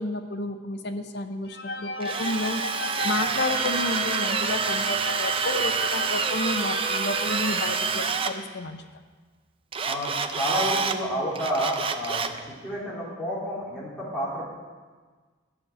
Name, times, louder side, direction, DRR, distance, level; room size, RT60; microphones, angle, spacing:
voice 1, 0.0-2.6 3.0-8.8, left 2 dB, 55° left, 8 dB, 0.7 m, -31 dB
sound 1, 1.5-8.5, left 2 dB, 85° left, 1.2 m, -35 dB
Drill, 2.0-8.3 9.7-11.0 11.3-12.4, right 5 dB, 30° right, 0.5 m, -27 dB
voice 2, 9.8-14.5, equal, 5° left, -8 dB, 3.3 m, -30 dB
11.5 x 6.4 x 7.4 m, 1.4 s
head